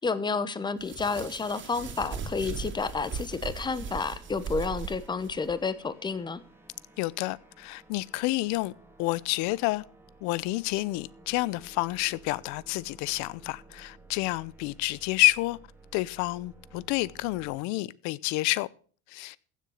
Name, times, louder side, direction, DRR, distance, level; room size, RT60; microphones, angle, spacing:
voice 1, 0.0-6.4, left 4 dB, 15° left, 1.0 m, -30 dB
sound 1, 0.8-5.6, right 6 dB, 40° right, 2.5 m, -38 dB
sound 2, 1.7-17.6, right 2 dB, 5° right, 2.0 m, -55 dB
voice 2, 7.0-8.7 9.0-9.8 10.2-15.6 15.9-18.7 19.1-19.4, left 20 dB, 65° left, 0.7 m, -29 dB
15.0 x 6.9 x 6.4 m
supercardioid pair, 130°, 31 cm